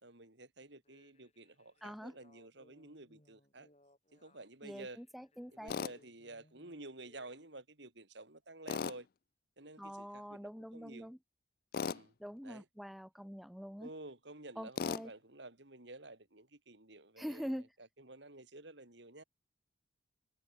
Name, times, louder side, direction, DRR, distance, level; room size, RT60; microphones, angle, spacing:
voice 1, 0.0-3.7 4.1-5.0 5.5-9.1 9.6-11.1 11.9-12.1 12.4-12.7 13.8-17.7 18.0-19.2, right 2 dB, 65° right, 3.3 m, -52 dB
sound 1, 0.8-7.5, left 1 dB, 30° left, 7.6 m, -68 dB
voice 2, 1.8-2.1 4.6-5.8 9.8-11.2 12.2-13.9 14.6-15.1 17.2-17.7, equal, ahead, 2.5 m, -44 dB
Tools, 5.7-5.9 8.7-9.0 11.7-12.0 14.8-15.1, left 6 dB, 50° left, 0.3 m, -36 dB
head